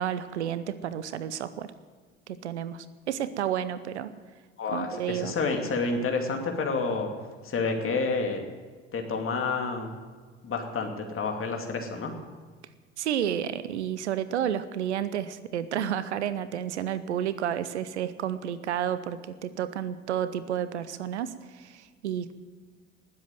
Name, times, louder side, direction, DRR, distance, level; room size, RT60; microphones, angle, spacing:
voice 1, 0.0-1.7 2.3-4.1 4.7-5.3 13.0-22.3, right 10 dB, 85° right, 15 dB, 0.7 m, -31 dB
voice 2, 4.6-7.1 7.4-8.4 8.9-9.9 10.4-12.1, left 4 dB, 40° left, 3 dB, 2.6 m, -29 dB
19.5 x 7.7 x 7.6 m, 1.5 s
figure-of-eight pair, 55°, 33 cm